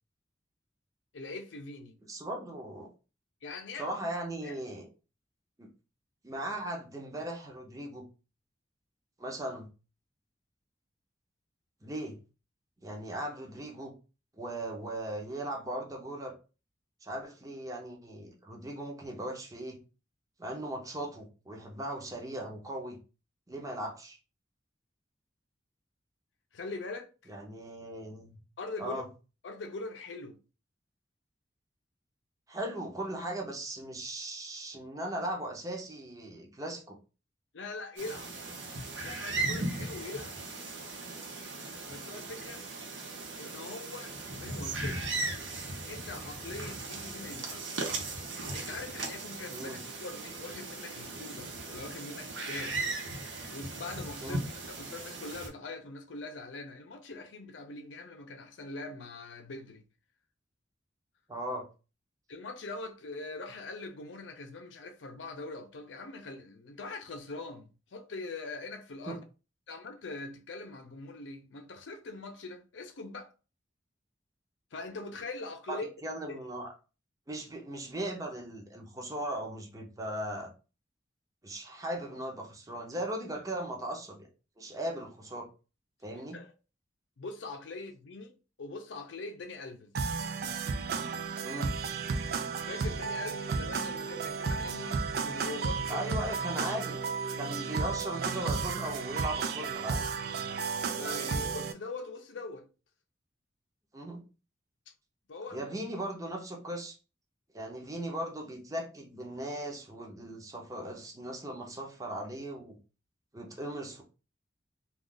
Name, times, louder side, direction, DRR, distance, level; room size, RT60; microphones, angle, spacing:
voice 1, 1.1-2.0 3.4-4.0 4.4-4.6 26.5-27.3 28.6-29.0 29.4-30.4 37.5-38.3 39.0-40.4 41.9-42.6 43.4-45.0 45.9-47.9 48.5-52.9 53.5-54.4 54.7-59.8 62.3-69.2 69.7-73.3 74.7-75.9 76.3-76.4 86.3-86.5 87.2-89.9 92.7-96.0 101.0-102.7 104.9-105.0 105.3-105.7, left 3 dB, 80° left, 0.6 m, -42 dB
voice 2, 2.1-2.9 3.8-4.9 5.6-5.7 6.2-8.1 9.2-9.7 11.8-12.2 12.8-13.9 14.4-16.3 17.0-19.8 20.4-23.0 23.5-24.2 27.3-28.4 28.8-29.1 32.5-37.0 49.5-49.8 54.2-54.4 61.3-61.7 69.1-69.2 75.7-76.7 77.3-80.5 81.4-84.3 84.6-85.5 86.0-86.4 91.4-91.7 95.9-97.0 97.4-100.1 103.9-104.2 105.5-107.0 107.5-112.8 113.3-114.0, right 1 dB, 20° right, 0.7 m, -38 dB
sound 1, 38.0-55.5, right 3 dB, 85° right, 0.8 m, -38 dB
sound 2, 89.9-101.7, right 5 dB, 55° right, 0.4 m, -33 dB
2.4 x 2.4 x 3.7 m
head